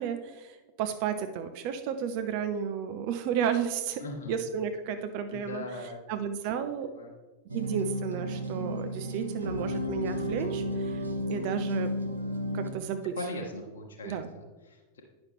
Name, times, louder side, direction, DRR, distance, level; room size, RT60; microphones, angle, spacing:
voice 1, 0.0-6.9 7.5-11.9 12.5-13.2 14.0-14.3, right 8 dB, 45° right, 8 dB, 0.5 m, -33 dB
voice 2, 4.0-4.4 5.3-6.0 6.5-6.7 6.9-7.1 13.2-15.0, left 2 dB, 65° left, 1 dB, 1.0 m, -39 dB
sound 1, 7.5-12.7, equal, 80° right, 0.7 m, -33 dB
9.5 x 6.0 x 3.5 m, 1.2 s
figure-of-eight pair, 90°, 0 cm